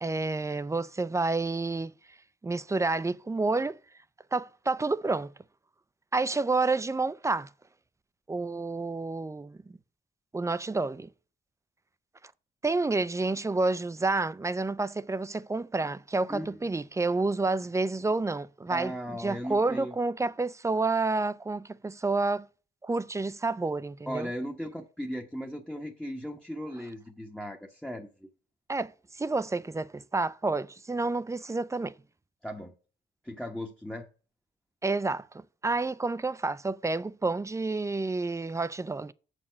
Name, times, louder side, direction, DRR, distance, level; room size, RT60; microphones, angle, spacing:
voice 1, 0.0-1.9 2.4-3.8 4.3-5.3 6.1-7.5 8.3-9.8 10.3-11.1 12.6-22.5 22.8-24.3 28.7-31.9 34.8-35.3 35.6-39.1, right 3 dB, 15° right, 0.5 m, -29 dB
voice 2, 18.7-19.9 24.1-28.1 32.4-32.7 33.2-34.1, equal, 5° left, 1.0 m, -37 dB
7.2 x 6.6 x 5.6 m
cardioid pair, 90°, 20 cm